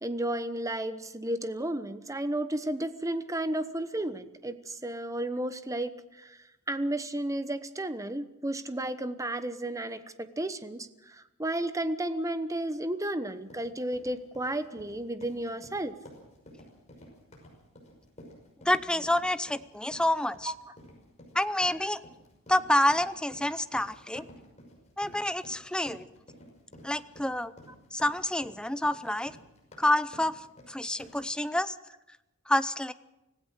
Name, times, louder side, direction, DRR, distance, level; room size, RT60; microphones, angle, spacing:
voice 1, 0.0-6.4 6.7-15.9 20.5-20.6, right 1 dB, 15° right, 11 dB, 1.0 m, -33 dB
sound 1, 13.3-31.3, equal, 30° left, 5.7 m, -53 dB
voice 2, 18.6-20.5 21.3-22.0 22.5-24.2 25.0-26.1 26.8-27.5 27.9-29.4 29.8-30.4 30.7-31.7 32.5-32.9, left 1 dB, 5° left, 13 dB, 0.6 m, -28 dB
25.0 x 16.0 x 6.5 m, 0.95 s
head